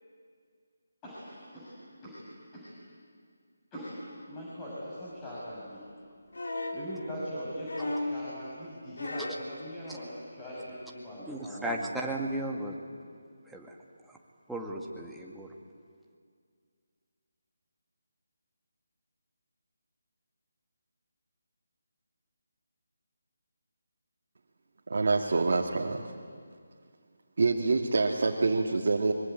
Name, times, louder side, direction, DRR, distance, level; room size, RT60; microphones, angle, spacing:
voice 1, 1.0-1.8 2.0-2.2 2.5-2.7 3.7-4.0 4.3-5.8 6.7-11.8, equal, 15° left, -8 dB, 6.4 m, -41 dB
sound 1, 6.3-6.9 7.7-8.2 9.0-9.5 10.7-10.8, left 2 dB, 75° left, 3.7 m, -34 dB
voice 2, 11.3-12.8 13.1-13.2 13.5-13.8 14.1-14.2 14.5-15.5, right 1 dB, ahead, -2 dB, 2.1 m, -35 dB
voice 3, 24.9-26.1 27.4-29.1, right 3 dB, 60° right, 0 dB, 2.1 m, -26 dB
23.5 x 23.5 x 9.3 m, 2.1 s
figure-of-eight pair, 160°, 0 cm